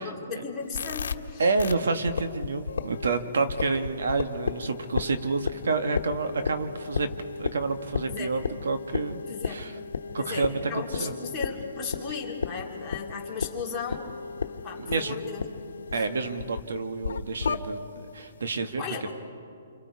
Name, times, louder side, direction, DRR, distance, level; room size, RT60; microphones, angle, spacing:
voice 1, 0.0-1.5 8.1-8.4 9.3-9.6 10.2-15.4 15.9-16.0 18.8-19.1, left 5 dB, 10° left, -5 dB, 2.7 m, -36 dB
sound 1, 0.7-1.2 1.6-1.8 2.1-3.1 3.5-16.6 17.0-17.6, left 5 dB, 85° left, 1.1 m, -34 dB
voice 2, 1.4-7.1 7.4-9.2 9.5-9.7 10.1-11.1 14.8-15.2 15.9-17.8 18.1-19.1, right 3 dB, 80° right, 8 dB, 1.7 m, -29 dB
29.5 x 26.0 x 4.8 m, 2.6 s
hypercardioid pair, 170°, 0 cm